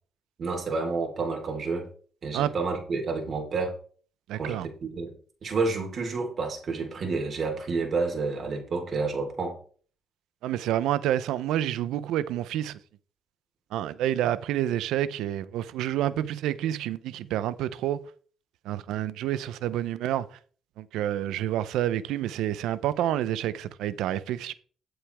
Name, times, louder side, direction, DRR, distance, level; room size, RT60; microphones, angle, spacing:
voice 1, 0.4-1.9 2.2-3.7 4.3-5.1 5.4-9.6, right 4 dB, 50° right, 4.4 m, -29 dB
voice 2, 4.3-4.7 10.4-12.7 13.7-18.0 18.7-20.2 20.8-24.5, right 12 dB, 90° right, 0.8 m, -28 dB
14.0 x 8.0 x 3.6 m
cardioid pair, 90°, 0 cm